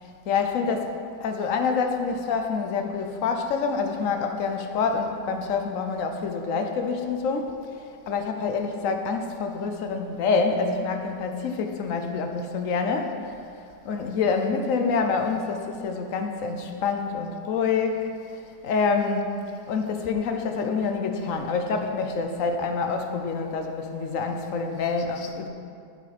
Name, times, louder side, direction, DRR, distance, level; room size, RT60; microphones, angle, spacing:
voice 1, 0.3-0.9 1.2-7.5 8.1-13.3 13.8-18.1 18.6-19.3 19.7-25.5, left 5 dB, 60° left, 5 dB, 0.9 m, -26 dB
8.7 x 7.3 x 4.2 m, 2.4 s
omnidirectional pair, 1.9 m